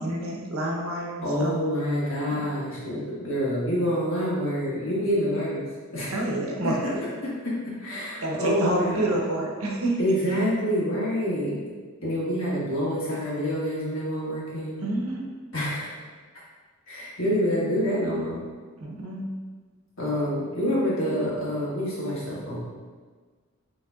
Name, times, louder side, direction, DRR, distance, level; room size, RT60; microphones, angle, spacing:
voice 1, 0.0-1.6 2.3-2.4 6.1-7.0 8.2-10.0 14.8-15.2 17.3-17.4 18.8-19.3, right 1 dB, 85° right, -2 dB, 0.9 m, -28 dB
voice 2, 1.2-5.7 5.9-6.1 6.6-6.7 7.2-9.2 10.0-11.6 12.0-14.8 15.5-15.9 16.9-18.4 20.0-22.6, equal, 65° left, -7 dB, 1.5 m, -27 dB
6.6 x 3.2 x 2.4 m, 1.5 s
head